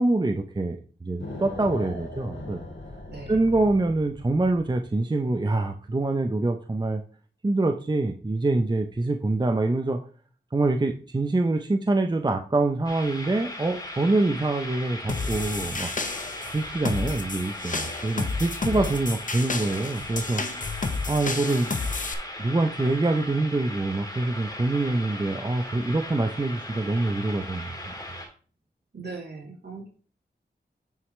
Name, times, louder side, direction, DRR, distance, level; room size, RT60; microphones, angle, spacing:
voice 1, 0.0-2.6 3.3-7.0 7.4-10.0 10.5-15.9 16.5-20.4 21.1-21.7 22.4-27.9, right 2 dB, 25° right, 5 dB, 0.6 m, -25 dB
sound 1, 1.2-4.9, left 2 dB, 90° left, 2.2 m, -39 dB
voice 2, 3.1-3.4 18.7-19.0 28.9-29.9, right 3 dB, 65° right, -2 dB, 2.7 m, -39 dB
sound 2, 12.8-28.2, left 1 dB, 20° left, 3.0 m, -38 dB
sound 3, 15.1-22.1, left 3 dB, 45° left, 0.8 m, -31 dB
9.0 x 4.8 x 3.2 m, 0.40 s
wide cardioid pair, 65°, 19 cm